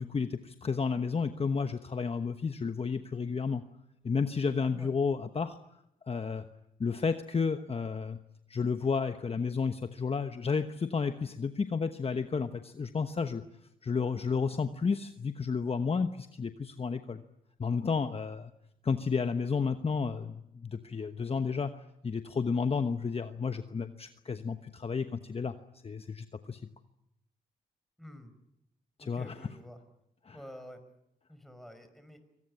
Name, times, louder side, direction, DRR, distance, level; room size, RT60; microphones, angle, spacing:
voice 1, 0.0-3.6 4.0-5.6 6.1-6.4 6.8-8.2 8.5-13.4 13.8-17.2 17.6-18.5 18.8-25.5 25.8-26.6 29.0-29.3 30.2-30.4, left 5 dB, 35° left, 8 dB, 1.1 m, -32 dB
voice 2, 28.0-28.3 29.0-29.8 30.3-30.8 31.3-32.2, equal, ahead, 9 dB, 5.4 m, -48 dB
24.5 x 18.5 x 9.8 m, 0.82 s
cardioid pair, 75°, 17 cm